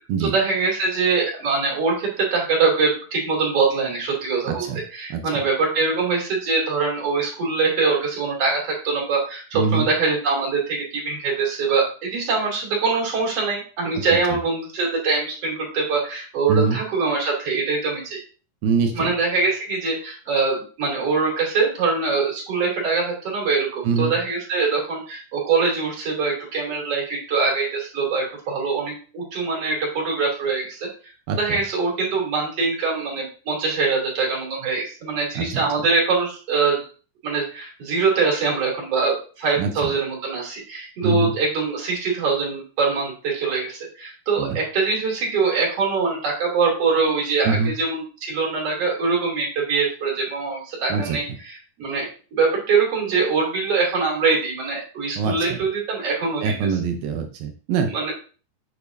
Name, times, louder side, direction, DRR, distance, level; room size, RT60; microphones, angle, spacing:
voice 1, 0.2-18.2 18.9-36.9 37.2-52.1 52.3-56.5 57.9-58.1, right 4 dB, 40° right, -3 dB, 3.6 m, -23 dB
voice 2, 4.5-4.8 5.1-5.4 9.5-9.9 14.3-14.4 16.5-16.8 18.6-19.1 23.8-24.2 31.3-31.6 35.4-35.6 39.6-39.9 41.0-41.3 44.4-44.6 47.5-47.7 50.9-51.2 55.2-55.6 56.4-58.1, right 5 dB, 75° right, 6 dB, 2.5 m, -24 dB
8.3 x 6.9 x 2.7 m, 0.37 s
omnidirectional pair, 4.4 m